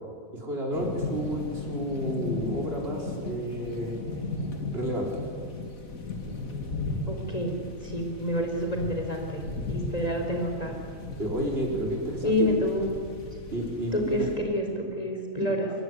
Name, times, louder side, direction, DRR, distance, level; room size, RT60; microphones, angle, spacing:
voice 1, 0.3-4.0 4.7-5.1 11.2-12.6 13.5-14.3, right 1 dB, 45° right, -1 dB, 4.9 m, -31 dB
sound 1, 0.7-14.4, left 3 dB, 80° left, 2.6 m, -36 dB
voice 2, 7.1-7.6 7.8-10.8 12.2-12.9 13.9-15.7, left 1 dB, 25° left, 2 dB, 4.8 m, -28 dB
23.5 x 21.5 x 9.7 m, 2.2 s
omnidirectional pair, 1.4 m